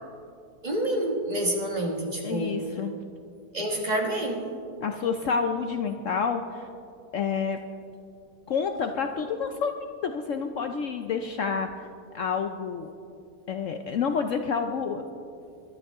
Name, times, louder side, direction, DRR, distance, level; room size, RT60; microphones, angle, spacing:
voice 1, 0.6-2.6 3.5-4.5, right 1 dB, 25° right, 1 dB, 1.4 m, -28 dB
voice 2, 2.2-2.9 4.8-6.7 7.1-7.6 8.5-11.7 12.1-12.9 13.5-15.0, left 6 dB, 65° left, 5 dB, 0.9 m, -29 dB
22.0 x 11.5 x 3.6 m, 2.5 s
omnidirectional pair, 1.7 m